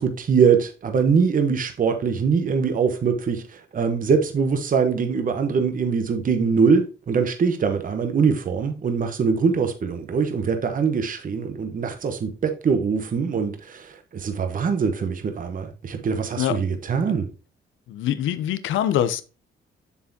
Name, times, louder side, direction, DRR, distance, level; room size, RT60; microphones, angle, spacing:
voice 1, 0.0-17.3, right 5 dB, 45° right, 1.1 m, -23 dB
voice 2, 17.9-19.2, left 11 dB, 80° left, 0.7 m, -23 dB
7.0 x 6.9 x 2.8 m
cardioid pair, 90°, 20 cm